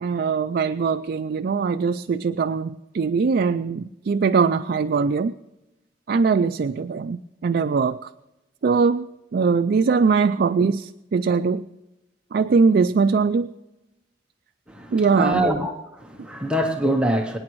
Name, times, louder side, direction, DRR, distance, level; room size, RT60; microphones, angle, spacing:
voice 1, 0.0-5.3 6.1-8.1 8.6-9.1 9.3-11.6 12.3-13.5 14.9-15.5, right 5 dB, 55° right, 9 dB, 0.4 m, -21 dB
voice 2, 14.7-17.4, right 1 dB, 5° right, 2 dB, 0.9 m, -24 dB
24.5 x 9.6 x 3.1 m, 0.98 s
head